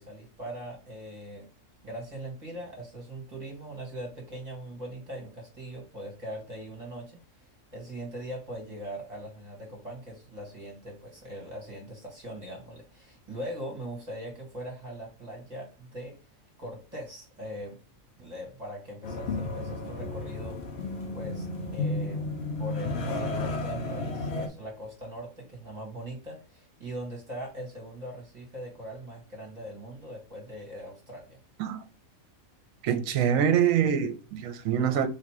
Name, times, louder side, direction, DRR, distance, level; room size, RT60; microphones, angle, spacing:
voice 1, 0.0-1.5 1.8-7.2 7.7-16.2 16.6-17.8 18.2-20.6 21.1-22.3 22.6-31.4, equal, 30° right, 1.8 m, -41 dB
sound 1, 19.0-24.5, left 2 dB, 55° left, 1.0 m, -32 dB
voice 2, 32.8-35.1, right 8 dB, 75° right, 1.0 m, -25 dB
3.5 x 2.8 x 4.7 m
omnidirectional pair, 1.5 m